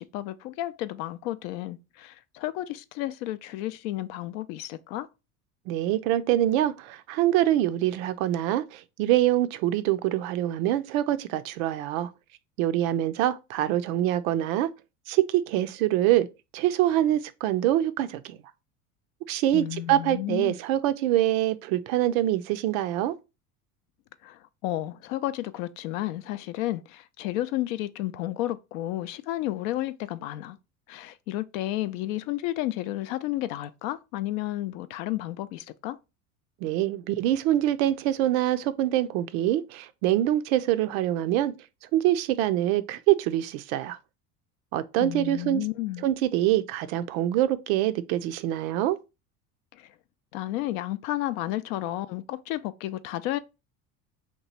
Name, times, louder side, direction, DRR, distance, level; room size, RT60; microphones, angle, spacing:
voice 1, 0.0-5.1 19.5-20.6 24.2-30.6 30.9-36.0 45.0-46.1 49.7-49.9 50.3-53.4, left 15 dB, 65° left, 0.5 m, -32 dB
voice 2, 5.7-12.1 12.6-14.7 15.1-16.3 16.5-18.4 19.3-23.1 36.6-41.5 41.9-44.0 44.7-45.6 46.0-49.0, right 13 dB, 65° right, 0.5 m, -25 dB
3.0 x 2.3 x 4.1 m
hypercardioid pair, 80°, 45 cm